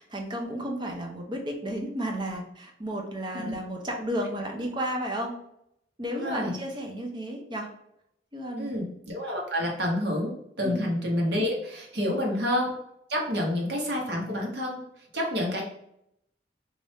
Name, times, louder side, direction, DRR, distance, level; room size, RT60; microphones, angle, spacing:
voice 1, 0.0-5.3 6.0-7.7 8.3-8.8 10.6-10.9 12.0-12.4 15.4-15.5, equal, 25° right, 2 dB, 0.6 m, -33 dB
voice 2, 6.1-6.5 8.6-12.7 13.1-14.8 15.1-15.6, left 1 dB, 60° right, -1 dB, 1.1 m, -28 dB
3.3 x 2.5 x 4.1 m, 0.76 s
head